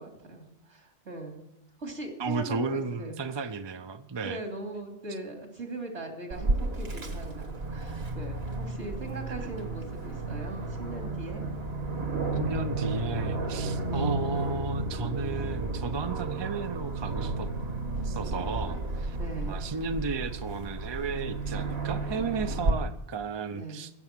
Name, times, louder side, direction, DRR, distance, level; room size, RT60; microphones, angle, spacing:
voice 1, 0.0-1.4 1.8-3.6 4.2-11.4 13.8-14.1 19.2-19.6 23.5-23.8, right 2 dB, 75° right, 2 dB, 3.1 m, -40 dB
voice 2, 2.2-4.4 12.4-17.5 18.0-19.2 19.4-23.9, right 4 dB, 30° right, 8 dB, 0.6 m, -33 dB
Aircraft, 6.3-22.7, right 2 dB, 60° right, 1.7 m, -32 dB
16.0 x 7.1 x 9.0 m, 0.87 s
omnidirectional pair, 1.2 m